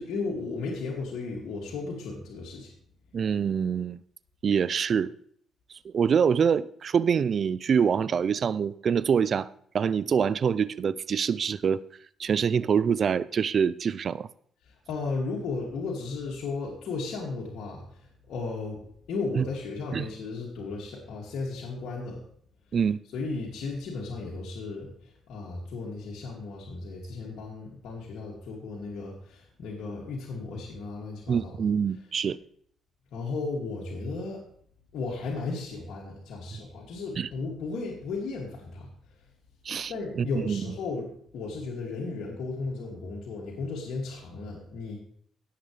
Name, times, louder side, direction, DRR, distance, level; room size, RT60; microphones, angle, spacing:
voice 1, 0.0-2.7 14.6-22.2 23.1-31.6 33.1-34.4 34.9-38.9 39.9-45.0, left 3 dB, 75° left, 2.5 m, -35 dB
voice 2, 3.1-4.0 4.4-5.1 5.8-9.5 9.7-11.8 12.2-14.3 19.3-19.4 19.9-20.0 22.7-23.0 31.3-32.4 37.2-37.3 39.7-39.9 40.5-40.6, right 7 dB, 50° right, 0.4 m, -25 dB
17.0 x 7.3 x 3.4 m
cardioid pair, 90°, 0 cm